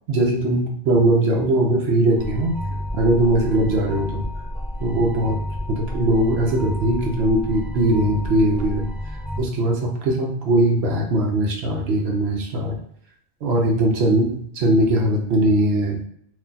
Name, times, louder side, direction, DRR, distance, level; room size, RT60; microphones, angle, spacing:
voice 1, 0.1-2.6 2.9-4.2 4.8-5.3 5.7-8.9 9.4-12.8 13.4-16.0, right 1 dB, 80° right, 0 dB, 0.9 m, -20 dB
sound 1, 2.2-9.4, left 1 dB, 5° left, 0.6 m, -30 dB
2.6 x 2.2 x 3.8 m, 0.67 s
omnidirectional pair, 1.1 m